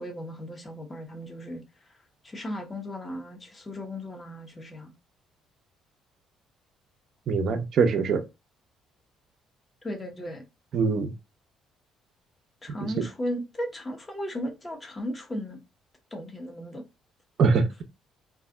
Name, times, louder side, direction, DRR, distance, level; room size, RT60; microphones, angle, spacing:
voice 1, 0.0-1.6 1.9-2.0 2.2-4.9 9.8-10.4 12.6-15.6 16.1-16.8, equal, 25° left, 1.0 m, -36 dB
voice 2, 7.3-8.2 10.7-11.1 12.8-12.9 17.4-17.8, right 5 dB, 60° right, 0.5 m, -23 dB
2.4 x 2.0 x 3.7 m
supercardioid pair, 60°, 0 cm